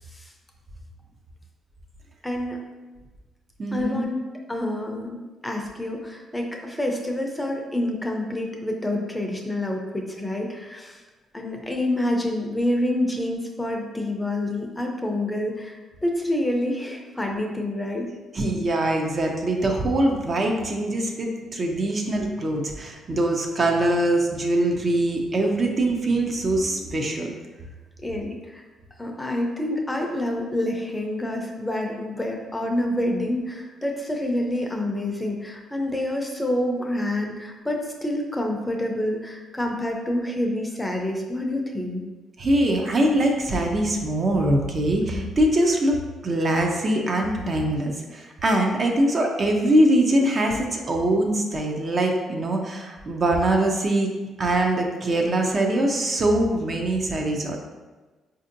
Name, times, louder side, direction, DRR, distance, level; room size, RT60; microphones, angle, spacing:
voice 1, 2.2-2.6 3.7-4.2 4.5-11.0 11.3-18.1 28.0-28.6 29.0-42.0 45.1-45.3, left 1 dB, 10° left, 1 dB, 0.5 m, -27 dB
voice 2, 3.6-4.0 18.3-27.3 42.4-46.0 46.2-54.1 54.4-57.6, right 1 dB, 40° right, 1 dB, 0.5 m, -23 dB
4.2 x 2.6 x 2.5 m, 1.2 s
cardioid pair, 90°, 0 cm